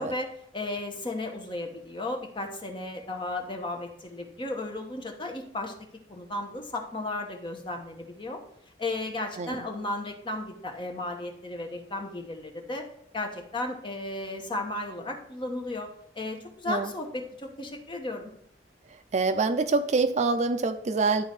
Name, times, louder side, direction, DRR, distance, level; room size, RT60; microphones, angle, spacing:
voice 1, 0.0-8.4 8.8-12.8 13.1-15.9 16.1-18.3, left 2 dB, 25° left, 3 dB, 1.1 m, -34 dB
voice 2, 19.1-21.2, right 3 dB, 40° right, 10 dB, 0.4 m, -25 dB
11.5 x 4.0 x 4.3 m, 0.69 s
head